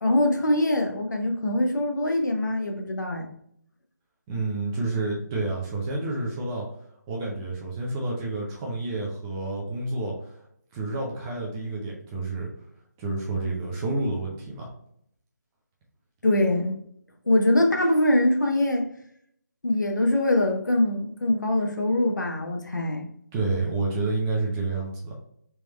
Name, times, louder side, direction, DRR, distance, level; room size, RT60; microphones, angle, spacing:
voice 1, 0.0-3.3 16.2-16.8 17.3-18.9 19.6-23.1, left 1 dB, 90° left, 2 dB, 0.9 m, -23 dB
voice 2, 4.3-6.7 7.1-10.1 10.7-12.5 13.0-14.7 23.3-25.1, right 2 dB, 10° right, -2 dB, 0.5 m, -29 dB
3.5 x 3.1 x 3.1 m, 0.69 s
figure-of-eight pair, 165°, 10 cm